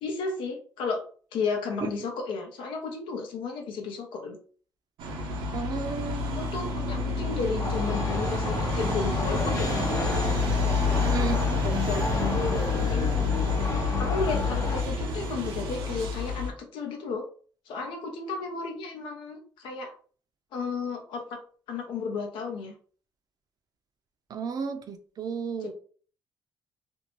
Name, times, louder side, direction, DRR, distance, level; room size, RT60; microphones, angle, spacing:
voice 1, 0.0-1.0 1.3-4.4 6.3-11.3 11.6-13.1 14.0-17.2 17.7-19.9 20.5-21.4 21.7-22.7 25.6-25.7, left 4 dB, 85° left, 0.7 m, -33 dB
sound 1, 5.0-16.5, left 3 dB, 90° right, 0.6 m, -28 dB
voice 2, 5.5-6.4 11.0-11.4 24.3-25.7, right 5 dB, 50° right, 0.5 m, -33 dB
sound 2, 7.6-14.8, left 4 dB, 40° left, 0.5 m, -32 dB
2.6 x 2.1 x 2.9 m
cardioid pair, 100°, 8 cm